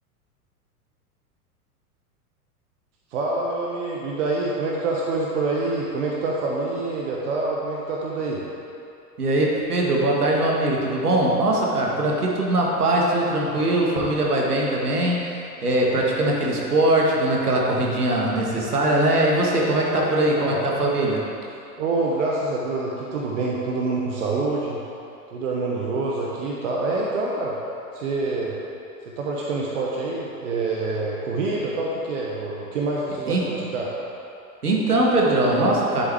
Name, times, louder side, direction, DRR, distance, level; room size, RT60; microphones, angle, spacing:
voice 1, 3.1-8.4 19.8-20.0 20.4-20.6 21.8-24.8 25.3-27.6 27.9-28.6 29.1-33.4 33.7-34.0, right 3 dB, 50° right, -3 dB, 1.1 m, -26 dB
voice 2, 9.2-15.3 15.6-21.2 33.3-33.6 34.6-36.0, right 1 dB, 75° right, -2 dB, 1.7 m, -21 dB
10.5 x 7.1 x 3.5 m, 2.7 s
figure-of-eight pair, 95°, 46 cm